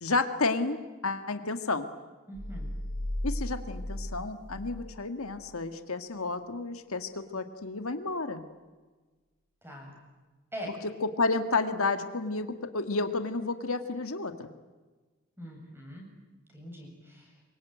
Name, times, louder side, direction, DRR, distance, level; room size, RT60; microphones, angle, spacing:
voice 1, 0.0-1.9 3.2-8.4 11.0-14.5, left 3 dB, 85° left, 8 dB, 1.8 m, -31 dB
sound 1, 2.3-4.9 5.2-5.4, left 1 dB, 40° left, 5.4 m, -35 dB
voice 2, 2.3-2.7 9.6-9.9 10.5-10.7 15.4-16.0 16.5-17.3, equal, 10° right, 0 dB, 7.9 m, -42 dB
27.0 x 23.5 x 9.2 m, 1.3 s
head